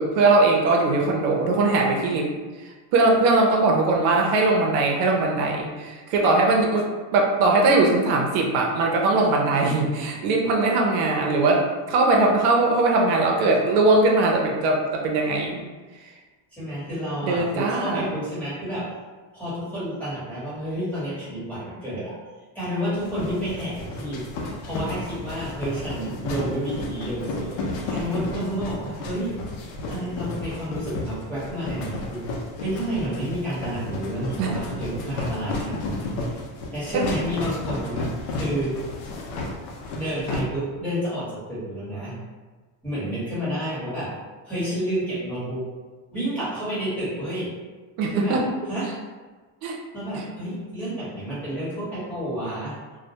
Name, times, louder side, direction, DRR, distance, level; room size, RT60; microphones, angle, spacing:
voice 1, 0.0-2.3 2.6-6.9 7.1-15.6 17.2-18.1 34.4-34.5 48.0-48.4 49.6-49.8, right 2 dB, 85° right, 0 dB, 0.6 m, -20 dB
voice 2, 16.5-18.9 19.3-22.1 22.5-24.2 24.6-29.4 29.9-36.4 36.7-38.8 39.9-42.1 42.8-44.1 44.4-45.7 46.1-47.5 48.1-48.4 48.7-48.9 49.9-52.7, right 1 dB, 5° left, -12 dB, 1.0 m, -30 dB
sound 1, 22.9-40.4, left 2 dB, 85° left, 0.6 m, -32 dB
2.1 x 2.1 x 2.8 m, 1.3 s
cardioid pair, 145°, 45 cm